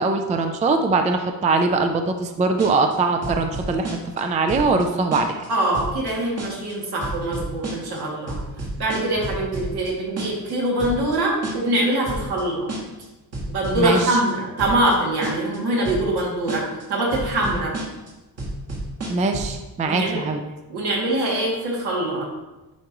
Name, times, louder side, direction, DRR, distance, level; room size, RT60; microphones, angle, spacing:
voice 1, 0.0-5.3 13.8-14.0 19.1-20.4, right 3 dB, 20° right, 5 dB, 0.3 m, -22 dB
sound 1, 2.6-2.9 3.2-4.2 4.5-4.8 5.1-5.5 5.7-6.1 6.4-6.7 7.0-8.0 8.3-9.9 10.2-10.5 10.8-11.2 11.4-11.8 12.1-12.4 12.7-13.0 13.3-14.3 14.6-14.9 15.2-15.6 15.8-16.2 16.5-16.8 17.1-18.1 18.4-19.5, right 2 dB, 40° right, 1.7 m, -30 dB
voice 2, 5.5-8.4 8.8-12.7 13.5-17.8 19.8-20.2 20.7-22.3, right 1 dB, 75° right, -3 dB, 2.4 m, -23 dB
10.0 x 4.7 x 3.0 m, 1.1 s
cardioid pair, 160°, 39 cm